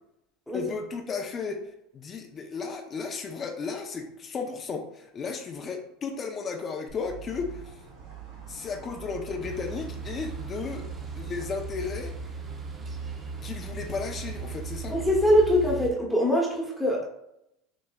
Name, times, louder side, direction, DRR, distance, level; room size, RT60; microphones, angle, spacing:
voice 1, 0.5-7.8 8.5-10.9 11.2-12.1 13.4-15.0, left 5 dB, 35° left, 4 dB, 0.6 m, -34 dB
sound 1, 6.9-15.7, right 4 dB, 75° right, 1.4 m, -44 dB
sound 2, 9.4-15.9, right 5 dB, 25° right, 0.6 m, -38 dB
voice 2, 14.9-17.1, equal, 5° left, -2 dB, 1.1 m, -23 dB
6.3 x 3.1 x 2.3 m, 0.83 s
supercardioid pair, 105°, 0 cm